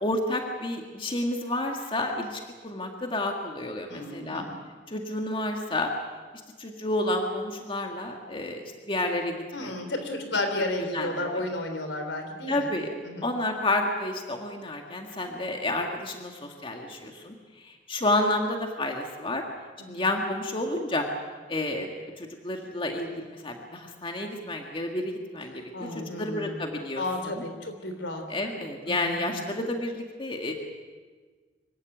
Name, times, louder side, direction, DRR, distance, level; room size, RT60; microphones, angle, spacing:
voice 1, 0.0-4.4 4.9-5.9 6.6-9.7 10.9-11.3 12.5-12.9 13.2-17.3 17.6-19.4 19.9-21.1 21.5-27.4 28.3-30.5, left 1 dB, 30° left, 2 dB, 1.9 m, -30 dB
voice 2, 3.9-4.6 9.5-12.7 13.0-13.3 19.8-20.1 25.7-26.5 27.0-28.2 28.9-29.4, left 2 dB, 75° left, 6 dB, 3.7 m, -33 dB
25.0 x 15.5 x 9.2 m, 1.4 s
head